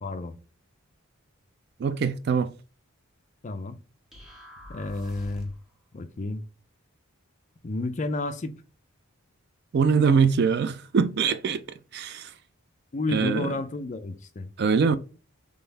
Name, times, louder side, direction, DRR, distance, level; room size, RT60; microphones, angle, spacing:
voice 1, 0.0-0.4 3.4-3.8 4.7-5.5 5.9-6.4 7.6-8.6 12.9-14.5, left 2 dB, 35° left, 0.4 m, -31 dB
voice 2, 1.8-2.5 9.7-11.6 11.9-12.3 13.1-13.5 14.6-15.0, right 5 dB, 50° right, 0.3 m, -23 dB
sound 1, 4.1-5.7, equal, ahead, 1.1 m, -45 dB
3.9 x 3.4 x 4.0 m
head